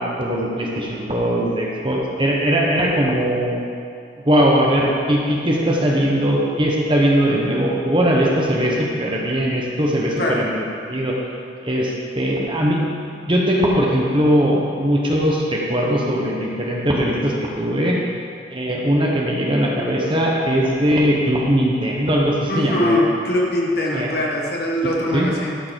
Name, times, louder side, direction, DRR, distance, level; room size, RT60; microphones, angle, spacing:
voice 1, 0.0-3.6 4.2-11.2 11.6-12.9 13.1-18.0 18.5-23.0 23.9-24.1 25.1-25.3, equal, 25° right, -2 dB, 1.2 m, -20 dB
voice 2, 22.5-25.6, left 1 dB, 55° left, -3 dB, 1.6 m, -22 dB
12.5 x 4.8 x 6.5 m, 2.4 s
head